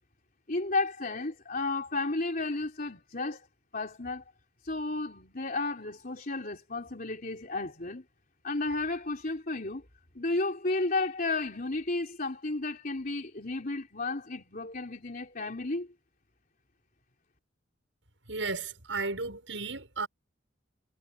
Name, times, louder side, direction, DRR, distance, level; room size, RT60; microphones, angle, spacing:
voice 1, 0.5-3.5 3.7-4.2 4.6-8.0 8.4-9.8 10.2-15.9, left 2 dB, 50° left, 3.6 m, -33 dB
voice 2, 18.3-20.1, right 3 dB, 85° right, 7.4 m, -34 dB
head